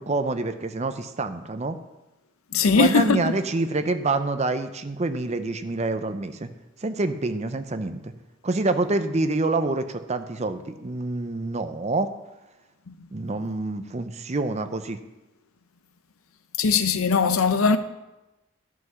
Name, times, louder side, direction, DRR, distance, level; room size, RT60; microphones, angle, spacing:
voice 1, 0.0-1.8 2.6-6.5 6.8-8.1 8.4-12.1 13.1-15.0, right 2 dB, 30° right, 0.6 m, -27 dB
voice 2, 2.5-3.4 12.9-13.0 16.6-17.8, left 5 dB, 85° left, 0.6 m, -20 dB
11.0 x 5.7 x 6.2 m
head